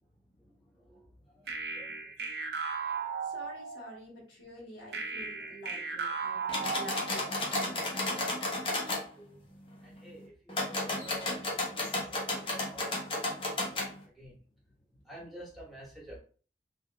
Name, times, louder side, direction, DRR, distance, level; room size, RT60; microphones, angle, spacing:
voice 1, 0.4-2.1 8.9-9.5 9.8-13.0 13.4-14.4 15.0-16.2, right 1 dB, ahead, -7 dB, 1.0 m, -51 dB
sound 1, 1.5-4.0 4.9-7.4, right 5 dB, 70° right, 0.5 m, -36 dB
voice 2, 3.2-7.9, equal, 90° left, -4 dB, 1.3 m, -48 dB
sound 2, 6.5-9.0 10.5-13.9, left 2 dB, 30° left, 0.7 m, -33 dB
3.5 x 2.4 x 2.2 m, 0.42 s
head